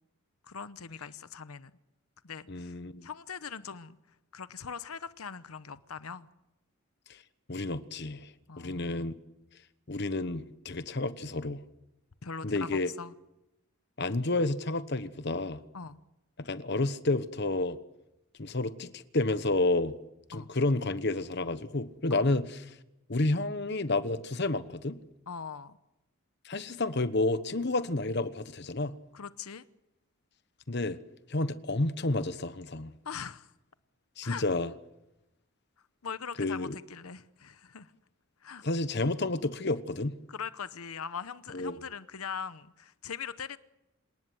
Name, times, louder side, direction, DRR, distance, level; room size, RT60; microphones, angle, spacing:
voice 1, 0.5-1.7 2.2-2.8 3.0-4.0 4.3-6.3 8.5-9.1 12.2-13.1 15.7-16.0 20.3-20.5 22.1-22.2 25.3-25.8 29.1-29.6 33.0-33.5 34.2-34.4 36.0-37.9 38.4-38.6 40.3-43.6, left 6 dB, 90° left, 0.9 m, -41 dB
voice 2, 2.5-3.1 7.5-8.3 8.6-9.1 9.9-11.6 12.4-12.9 14.0-15.6 16.4-17.8 18.4-20.0 20.3-22.7 23.1-25.0 26.4-29.0 30.7-31.0 31.3-32.9 34.2-34.7 36.4-36.7 38.6-40.2 41.5-41.8, left 2 dB, 50° left, 1.1 m, -30 dB
27.5 x 18.5 x 7.9 m
head